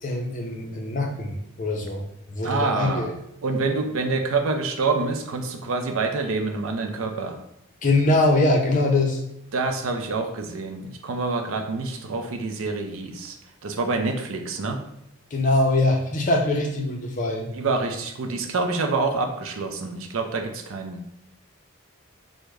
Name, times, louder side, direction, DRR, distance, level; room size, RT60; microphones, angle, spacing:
voice 1, 0.0-2.0 2.3-3.1 7.8-9.2 15.3-17.5, left 2 dB, 35° left, 0 dB, 0.5 m, -22 dB
voice 2, 2.4-3.1 3.4-7.4 9.5-13.4 13.6-14.8 17.5-21.2, right 3 dB, 70° right, 5 dB, 0.4 m, -27 dB
3.3 x 2.1 x 3.5 m, 0.80 s
head